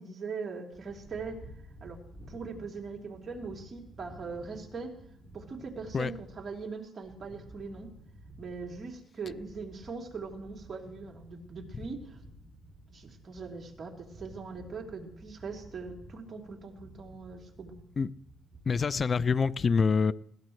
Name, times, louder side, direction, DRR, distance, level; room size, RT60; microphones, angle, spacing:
voice 1, 0.0-1.4 1.8-2.0 2.3-4.9 5.3-7.9 8.4-12.2 12.9-17.8, right 4 dB, 40° right, 3.4 m, -41 dB
sound 1, 0.7-19.4, right 1 dB, 15° right, 5.3 m, -52 dB
voice 2, 18.7-20.1, left 5 dB, 40° left, 0.5 m, -26 dB
21.0 x 17.0 x 3.2 m
cardioid pair, 90°, 0 cm